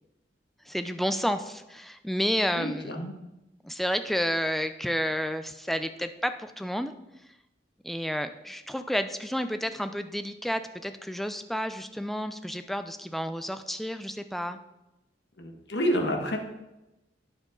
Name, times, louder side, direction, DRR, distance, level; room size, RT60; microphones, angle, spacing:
voice 1, 0.7-2.9 3.6-6.9 7.8-14.6, equal, ahead, 9 dB, 0.5 m, -30 dB
voice 2, 2.5-3.1 15.4-16.4, equal, 65° left, 3 dB, 1.7 m, -29 dB
12.5 x 8.8 x 3.9 m, 0.95 s
head